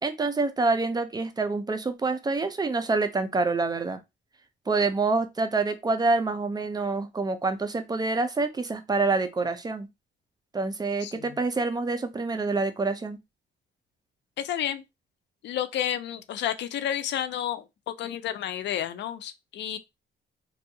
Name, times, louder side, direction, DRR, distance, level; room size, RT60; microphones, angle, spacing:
voice 1, 0.0-4.0 4.7-9.9 10.5-13.2, right 3 dB, 20° right, 0.4 m, -27 dB
voice 2, 11.0-11.4 14.4-14.8 15.4-19.8, left 10 dB, 65° left, 0.4 m, -31 dB
2.6 x 2.3 x 2.6 m
cardioid pair, 90°, 20 cm